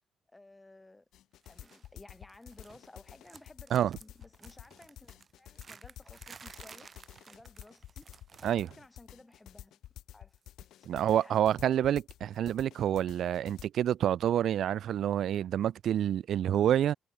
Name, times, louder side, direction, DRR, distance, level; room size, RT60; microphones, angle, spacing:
voice 1, 0.3-1.1 1.5-6.9 7.3-8.1 8.4-9.8 10.1-10.4 10.8-11.7, left 2 dB, 15° left, 5.5 m, -55 dB
sound 1, 1.1-13.7, left 13 dB, 90° left, 2.5 m, -51 dB
sound 2, 1.4-1.9 2.1-2.9 3.2-8.8 9.1-9.3 10.4-10.5, right 5 dB, 35° right, 5.7 m, -54 dB
voice 2, 10.9-16.9, right 10 dB, 70° right, 0.7 m, -28 dB
cardioid pair, 130°, 0 cm